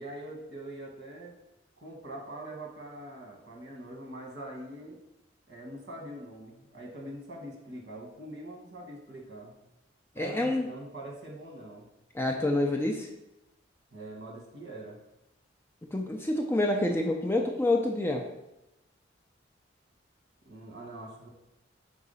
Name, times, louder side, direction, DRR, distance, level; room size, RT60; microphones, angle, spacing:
voice 1, 0.0-1.4 1.8-5.0 5.5-9.5 10.2-11.9 13.9-15.0 20.4-21.3, right 1 dB, 60° right, -2 dB, 1.5 m, -43 dB
voice 2, 10.2-10.7 12.1-13.1 15.9-18.3, left 2 dB, 10° left, 2 dB, 0.4 m, -27 dB
4.8 x 3.7 x 5.5 m, 0.91 s
head